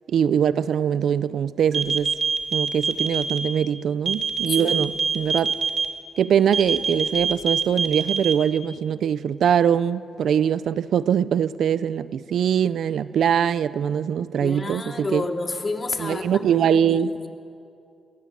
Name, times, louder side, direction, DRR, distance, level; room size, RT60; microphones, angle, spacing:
voice 1, 0.1-2.1 2.5-5.6 6.2-15.2 16.0-17.1, right 8 dB, 75° right, 0.7 m, -22 dB
sound 1, 1.7-3.4 4.1-5.9 6.5-8.3, right 5 dB, 50° right, 3.1 m, -23 dB
voice 2, 4.6-4.9 14.4-16.5 16.9-17.3, left 3 dB, 35° left, 2.9 m, -30 dB
27.5 x 23.5 x 8.9 m
cardioid pair, 80°, 0 cm